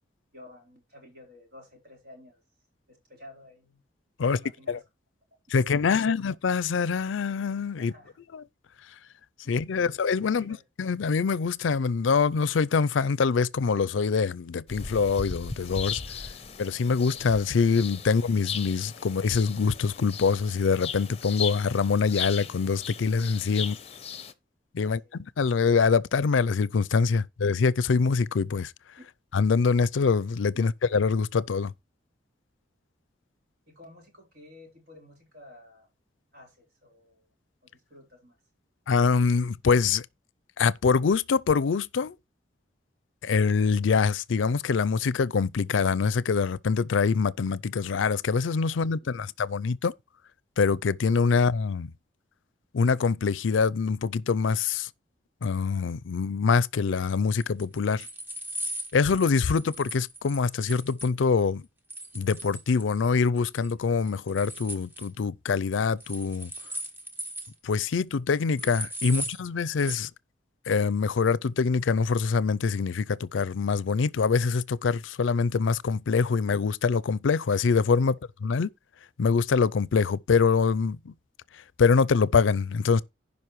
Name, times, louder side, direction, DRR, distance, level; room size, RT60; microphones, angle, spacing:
voice 1, 0.3-2.4 2.9-3.8 4.2-4.8 5.6-6.2 7.8-8.2 10.2-10.6 23.6-23.7 24.8-25.2 29.0-29.1 30.5-30.6 33.7-35.9 36.3-37.3 37.6-38.4 49.0-49.2 58.0-58.1, left 1 dB, 55° right, 3.8 m, -52 dB
voice 2, 5.5-7.9 8.3-8.4 9.5-16.0 16.6-23.8 24.7-25.0 25.4-28.7 29.3-31.7 38.9-40.1 40.6-42.2 43.2-49.9 50.6-51.9 52.7-54.9 55.4-58.1 58.9-61.7 62.1-66.5 67.6-70.1 70.7-78.7 79.2-81.1 81.5-83.0, left 5 dB, 85° left, 0.5 m, -24 dB
sound 1, 14.7-24.3, left 7 dB, 35° left, 0.7 m, -37 dB
sound 2, 57.4-61.1 61.9-63.1 63.4-63.7 64.0-65.1 66.0-67.5 67.8-67.9 68.1-68.2 68.6-69.4 69.8-70.0, right 1 dB, 10° right, 1.1 m, -38 dB
15.5 x 5.4 x 3.1 m
head